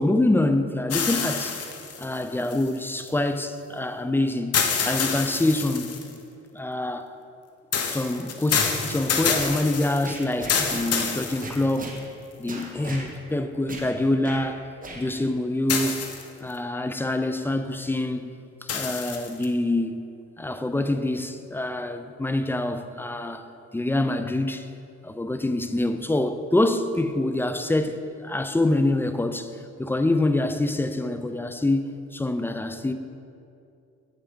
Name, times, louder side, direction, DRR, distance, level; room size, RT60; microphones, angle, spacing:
voice 1, 0.0-1.6 2.0-4.6 4.8-6.0 6.5-7.1 7.8-12.0 12.4-14.7 14.9-16.1 16.4-18.3 18.6-20.0 20.4-23.5 23.7-24.7 25.0-29.5 29.8-32.9, left 2 dB, 5° left, 0.3 m, -25 dB
sound 1, 0.9-3.1 4.5-6.2 7.7-12.0 12.6-12.7 15.7-16.5 18.7-19.5, left 6 dB, 55° left, 0.8 m, -27 dB
sound 2, 8.5-8.8 9.4-9.6 10.0-11.1 11.4-12.0 12.5-13.1 13.7-13.9 14.2-14.4 14.8-15.0, right 2 dB, 25° right, 1.2 m, -37 dB
7.9 x 6.9 x 3.6 m
cardioid pair, 90°, 30 cm